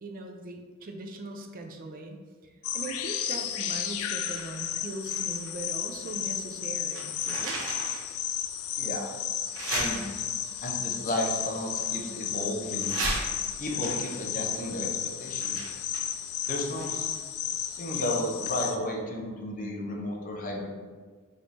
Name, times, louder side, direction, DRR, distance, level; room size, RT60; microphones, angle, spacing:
voice 1, 0.0-7.6, right 2 dB, 45° right, 4 dB, 0.4 m, -40 dB
sound 1, 2.6-18.8, left 9 dB, 75° left, 0.3 m, -33 dB
sound 2, 5.0-6.3 6.6-8.1 8.6-8.7 9.5-10.5 11.4-12.4 12.8-17.2 17.5-17.6, right 2 dB, 85° right, 1.0 m, -36 dB
voice 2, 8.8-9.1 9.7-10.1 10.6-13.0 13.6-14.9 15.2-15.7 16.5-17.1 17.5-20.7, left 1 dB, 40° left, 0 dB, 0.7 m, -33 dB
5.0 x 2.7 x 3.2 m, 1.5 s
head